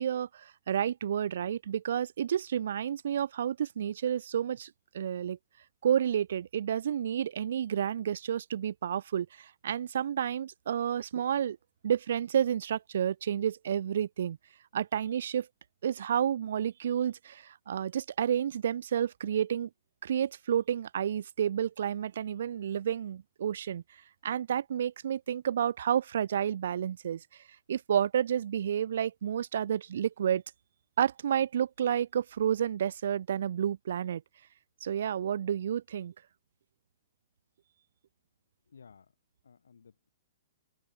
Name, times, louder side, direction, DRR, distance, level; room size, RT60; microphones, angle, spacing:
voice 1, 0.0-5.4 5.8-11.6 11.8-14.4 14.7-15.5 15.8-19.7 20.0-23.8 24.2-27.2 27.7-30.4 31.0-34.2 34.8-36.1, right 9 dB, 60° right, 0.5 m, -30 dB
voice 2, 38.7-39.1 39.4-40.1, left 6 dB, 75° left, 6.7 m, -56 dB
figure-of-eight pair, 115°, 0 cm